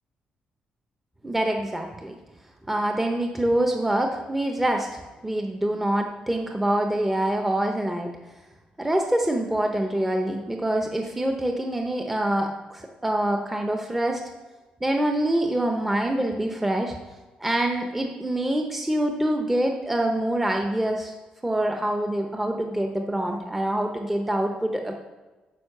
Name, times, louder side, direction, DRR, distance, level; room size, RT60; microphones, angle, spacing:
voice 1, 1.2-2.2 2.7-8.1 8.8-14.2 14.8-16.9 17.4-21.1 21.4-25.0, right 1 dB, 10° right, 3 dB, 0.7 m, -25 dB
9.3 x 5.1 x 6.6 m, 1.2 s
cardioid pair, 150°, 3 cm